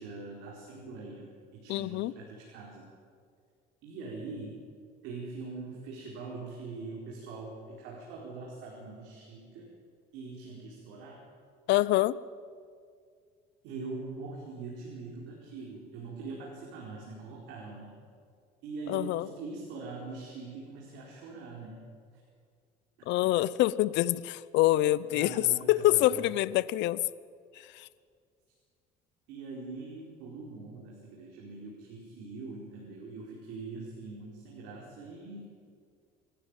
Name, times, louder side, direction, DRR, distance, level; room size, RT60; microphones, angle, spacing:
voice 1, 0.0-2.9 3.8-4.6 5.0-9.7 10.1-11.2 13.6-18.0 18.6-21.8 25.1-26.2 29.3-35.4, right 3 dB, 80° right, -3 dB, 4.6 m, -43 dB
voice 2, 1.7-2.1 11.7-12.2 18.9-19.3 23.1-27.0 27.6-27.9, left 15 dB, 75° left, 19 dB, 0.7 m, -26 dB
26.0 x 14.0 x 9.1 m, 2.1 s
supercardioid pair, 85°, 19 cm